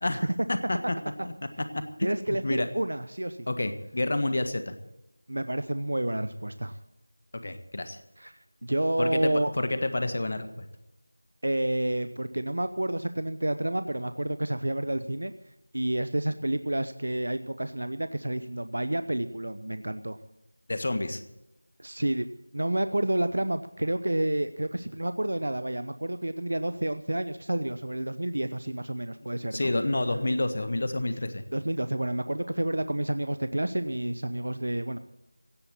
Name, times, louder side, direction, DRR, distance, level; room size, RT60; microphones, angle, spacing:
voice 1, 0.0-1.0 1.2-1.3 1.7-1.8 2.3-2.7 3.5-4.8 7.4-8.0 9.0-10.6 20.7-21.2 29.5-31.4, left 2 dB, 40° left, 9 dB, 1.6 m, -29 dB
voice 2, 1.8-3.5 5.3-6.8 8.2-8.3 8.6-9.5 11.4-15.3 15.7-20.2 21.8-22.3 22.5-29.7 31.5-35.0, right 1 dB, 70° right, 11 dB, 0.9 m, -29 dB
17.0 x 8.4 x 8.5 m, 0.91 s
figure-of-eight pair, 175°, 0 cm